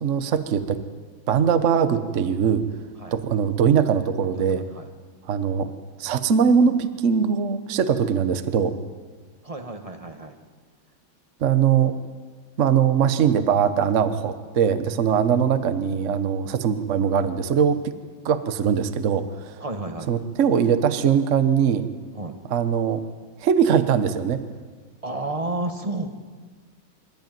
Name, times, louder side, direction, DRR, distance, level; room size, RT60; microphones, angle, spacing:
voice 1, 0.0-0.8 1.3-2.6 3.1-4.7 5.3-5.7 6.0-8.8 11.4-12.0 12.6-18.0 18.2-19.6 20.1-21.9 22.5-23.0 23.4-24.4, right 7 dB, 45° right, 10 dB, 1.1 m, -21 dB
voice 2, 4.3-4.9 9.4-10.3 19.6-20.1 22.1-22.4 25.0-26.1, right 2 dB, 20° right, 5 dB, 1.4 m, -31 dB
25.0 x 13.5 x 9.3 m, 1.5 s
omnidirectional pair, 2.3 m